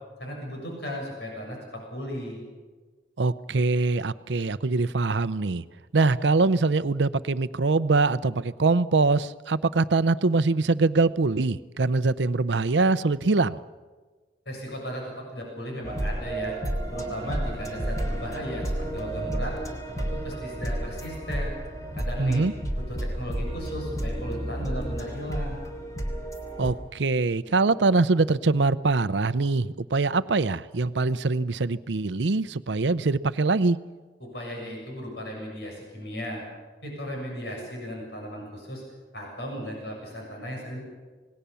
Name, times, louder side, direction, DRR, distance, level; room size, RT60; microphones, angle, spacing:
voice 1, 0.2-2.4 14.5-16.5 16.9-19.5 20.1-21.5 22.0-22.4 22.9-25.6 27.4-27.5 34.2-36.4 36.8-38.8 39.1-40.8, equal, 70° left, 0 dB, 7.2 m, -36 dB
voice 2, 3.2-5.6 5.9-13.6 22.2-22.5 26.6-33.8, right 3 dB, 85° right, 15 dB, 0.7 m, -23 dB
sound 1, 15.8-26.7, right 1 dB, 20° left, 3.1 m, -31 dB
27.5 x 19.5 x 7.0 m, 1.4 s
head